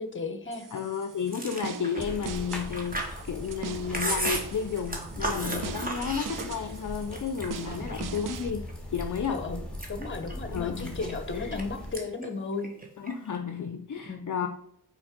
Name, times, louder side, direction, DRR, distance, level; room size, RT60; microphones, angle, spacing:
voice 1, 0.0-0.7 7.7-7.9 9.3-9.6 9.9-12.7 14.1-14.5, left 4 dB, 30° left, 7 dB, 0.9 m, -35 dB
sound 1, 0.5-8.5, right 8 dB, 55° right, 0.5 m, -42 dB
voice 2, 0.7-9.4 10.5-11.6 13.0-14.5, left 6 dB, 55° left, 6 dB, 0.5 m, -32 dB
Chewing mastication, 1.3-6.8 7.1-8.2 8.7-9.3 9.6-11.6 11.9-12.3 12.5-13.4, right 1 dB, 20° right, 1.3 m, -34 dB
sound 2, 2.0-12.0, equal, 5° left, 1.4 m, -40 dB
6.1 x 4.5 x 5.1 m, 0.73 s
wide cardioid pair, 135°, 39 cm